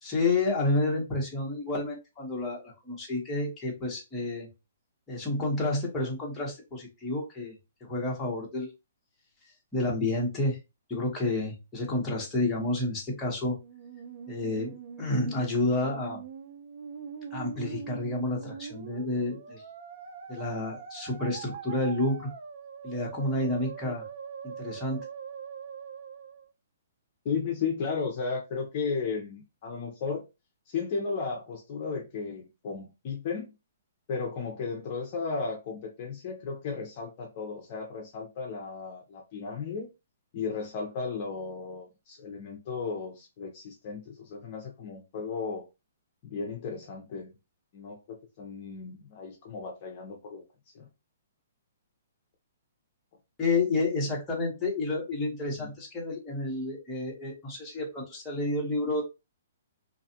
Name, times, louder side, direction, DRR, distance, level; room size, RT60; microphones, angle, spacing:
voice 1, 0.0-4.5 5.1-7.5 7.8-8.7 9.7-10.6 10.9-13.6 14.3-16.2 17.3-19.6 20.3-22.3 22.8-24.0 24.4-25.0 53.4-59.0, left 2 dB, 10° left, 0.9 m, -30 dB
Musical instrument, 13.5-26.5, right 7 dB, 55° right, 0.5 m, -43 dB
voice 2, 27.2-30.2 30.7-33.5 34.1-39.9 40.3-45.7 46.2-47.3 47.7-50.4 50.7-50.9 55.6-55.7, left 5 dB, 35° left, 0.6 m, -35 dB
2.5 x 2.3 x 2.7 m
hypercardioid pair, 165°, 0 cm